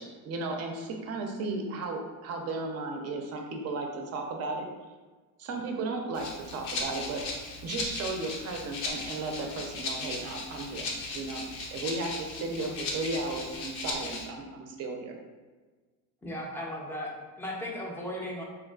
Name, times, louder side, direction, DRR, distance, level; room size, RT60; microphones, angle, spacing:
voice 1, 0.0-4.7 5.4-7.3 7.6-10.9 11.1-15.1, right 3 dB, 45° right, 2 dB, 0.5 m, -35 dB
Rattle (instrument), 6.1-14.2, left 3 dB, 80° left, 0.7 m, -37 dB
voice 2, 16.2-18.4, left 1 dB, 5° left, -2 dB, 0.5 m, -37 dB
3.3 x 2.3 x 2.3 m, 1.4 s
supercardioid pair, 110°, 36 cm